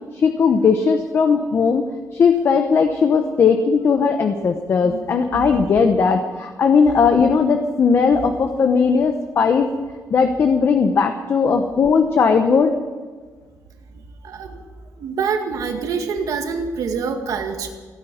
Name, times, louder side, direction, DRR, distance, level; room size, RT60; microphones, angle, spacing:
voice 1, 0.1-1.9 2.1-9.7 10.1-12.7, left 5 dB, 40° left, 6 dB, 1.0 m, -17 dB
voice 2, 4.8-5.6 14.2-14.6 15.0-17.7, right 5 dB, 70° right, 4 dB, 2.0 m, -26 dB
16.5 x 9.7 x 9.2 m, 1.4 s
cardioid pair, 160°, 6 cm